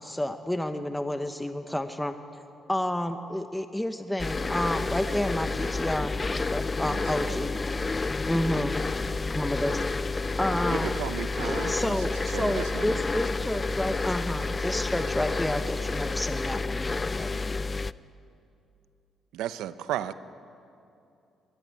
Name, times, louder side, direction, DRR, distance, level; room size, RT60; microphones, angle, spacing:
voice 1, 0.0-2.2 2.7-7.5 8.3-8.7 9.4-9.8 10.4-10.9 11.4-16.9 17.2-17.3, left 1 dB, 5° left, 8 dB, 0.9 m, -30 dB
sound 1, 4.2-17.9, left 3 dB, 25° left, 0.4 m, -30 dB
voice 2, 6.9-7.4 7.8-7.9 10.7-12.0 12.3-13.0 19.3-20.1, right 11 dB, 90° right, 13 dB, 0.7 m, -34 dB
voice 3, 7.8-10.3, left 2 dB, 70° left, 2 dB, 4.8 m, -50 dB
21.0 x 13.5 x 9.4 m, 2.6 s
cardioid pair, 90°, 0 cm